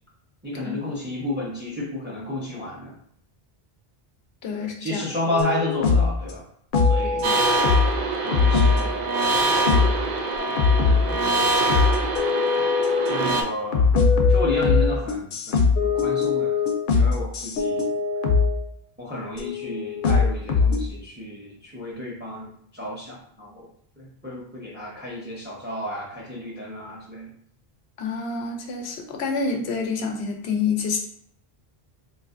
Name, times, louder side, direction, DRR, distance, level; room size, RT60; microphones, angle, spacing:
voice 1, 0.4-3.0 4.6-6.4 6.8-7.3 8.2-9.0 9.5-10.2 10.5-11.2 12.5-14.0 14.3-16.5 16.9-17.9 19.0-23.7 24.0-27.3, left 1 dB, 10° right, -4 dB, 0.7 m, -32 dB
voice 2, 4.4-5.0 7.0-7.4 28.0-31.0, left 5 dB, 90° left, 3 dB, 0.9 m, -28 dB
sound 1, 5.3-6.2 6.7-8.0 8.3-10.0 10.4-11.3 11.7-13.3 13.7-18.7 19.4-20.9, left 4 dB, 60° left, 0.7 m, -21 dB
sound 2, 7.2-13.4, right 2 dB, 55° right, 0.5 m, -24 dB
4.0 x 2.7 x 2.5 m, 0.67 s
omnidirectional pair, 1.1 m